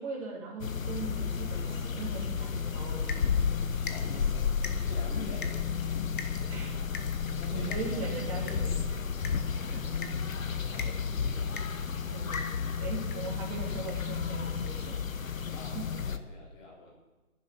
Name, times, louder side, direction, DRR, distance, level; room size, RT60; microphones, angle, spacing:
voice 1, 0.0-3.4 6.5-6.7 7.5-9.1 9.4-9.8 10.7-11.0 12.0-15.0, right 3 dB, 25° right, -2 dB, 2.7 m, -40 dB
sound 1, 0.6-16.2, left 6 dB, 65° left, 0.9 m, -32 dB
sound 2, 2.8-13.4 13.8-14.2 14.7-14.8 15.1-15.2, left 5 dB, 35° left, 1.0 m, -46 dB
voice 2, 3.7-4.5 4.9-5.5 5.8-5.9 7.3-8.0 10.6-10.9 11.4-11.6 15.5-16.9, left 3 dB, 5° left, -2 dB, 0.8 m, -47 dB
10.5 x 7.2 x 9.1 m, 1.1 s
figure-of-eight pair, 150°, 43 cm